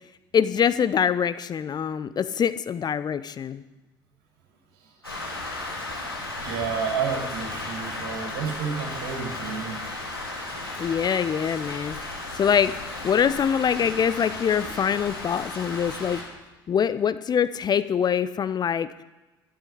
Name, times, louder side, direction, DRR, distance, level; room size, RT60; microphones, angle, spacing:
voice 1, 0.3-3.6 10.8-12.0 12.3-12.8 13.0-16.2 16.7-19.0, left 8 dB, 35° left, 14 dB, 0.7 m, -24 dB
Rain, 5.0-16.2, left 2 dB, 90° left, 3.3 m, -35 dB
voice 2, 6.4-9.8, right 6 dB, 65° right, 1 dB, 6.6 m, -30 dB
12.5 x 11.5 x 10.0 m, 1.1 s
figure-of-eight pair, 55°, 12 cm